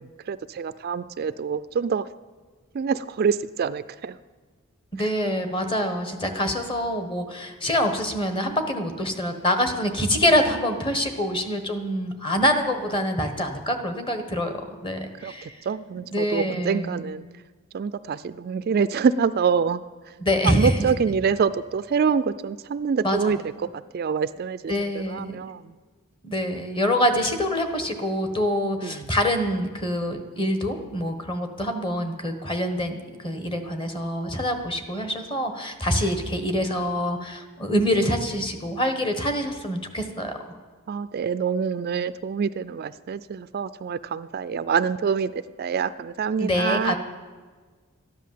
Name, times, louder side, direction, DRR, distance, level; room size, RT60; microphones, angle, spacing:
voice 1, 0.0-2.1 2.7-4.2 5.0-5.1 15.2-17.2 17.7-19.8 20.1-20.2 20.4-25.7 28.8-29.1 40.9-45.3 45.6-47.0, right 6 dB, 45° right, 14 dB, 0.3 m, -26 dB
voice 2, 4.9-14.5 14.8-15.6 16.1-17.1 20.2-20.7 23.0-23.4 24.7-25.4 26.2-40.4 46.4-47.0, equal, 25° left, 7 dB, 1.3 m, -25 dB
13.5 x 10.5 x 7.5 m, 1.4 s
head